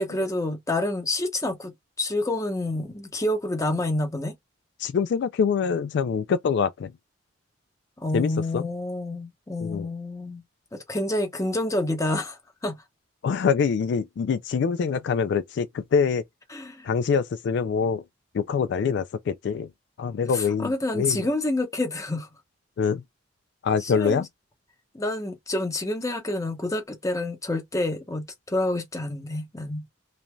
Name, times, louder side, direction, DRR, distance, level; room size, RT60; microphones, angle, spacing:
voice 1, 0.0-1.7 2.0-4.3 8.0-10.4 10.7-12.8 16.5-16.9 20.3-22.3 23.8-24.2 24.9-29.8, left 1 dB, 15° left, 0.8 m, -28 dB
voice 2, 4.8-6.9 8.1-8.7 9.6-9.9 13.2-16.2 16.8-18.0 18.3-19.7 20.0-21.3 22.8-23.0 23.6-24.3, left 6 dB, 65° left, 0.3 m, -25 dB
3.0 x 2.6 x 2.2 m
head